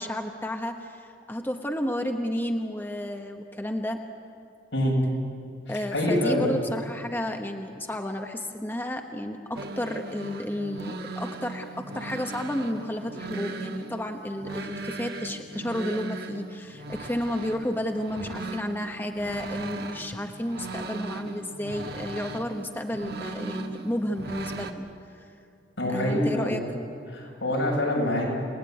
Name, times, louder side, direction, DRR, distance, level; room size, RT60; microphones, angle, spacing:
voice 1, 0.0-4.0 5.7-24.9 25.1-25.3 25.9-26.9, left 1 dB, 10° left, 4 dB, 1.2 m, -32 dB
voice 2, 5.9-6.5 25.8-26.5 27.1-28.3, left 1 dB, 90° left, -2 dB, 7.9 m, -25 dB
sound 1, 9.5-24.7, right 2 dB, 55° right, 1.4 m, -38 dB
30.0 x 18.5 x 9.4 m, 2.5 s
head